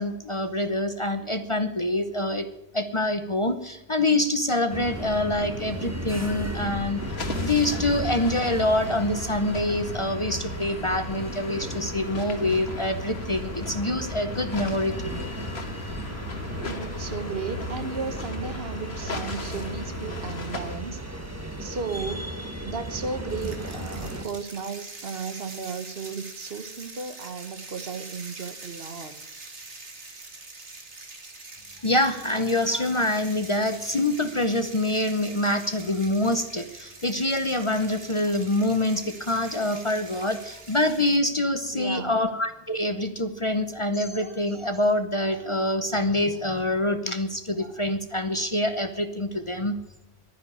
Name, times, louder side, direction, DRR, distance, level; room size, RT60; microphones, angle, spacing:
voice 1, 0.0-2.5 2.7-7.0 7.4-15.3 31.8-49.7, left 1 dB, 30° left, 9 dB, 0.8 m, -26 dB
sound 1, 4.7-24.2, right 1 dB, 15° right, 1.7 m, -35 dB
sound 2, 7.0-20.8, left 3 dB, 65° left, 1.7 m, -37 dB
voice 2, 16.6-21.0 21.6-22.3 22.7-29.1 41.6-42.2, right 5 dB, 60° right, 10 dB, 1.3 m, -34 dB
sound 3, 23.3-41.2, right 3 dB, 80° right, 2.3 m, -44 dB
12.0 x 9.8 x 9.9 m, 0.87 s
omnidirectional pair, 1.2 m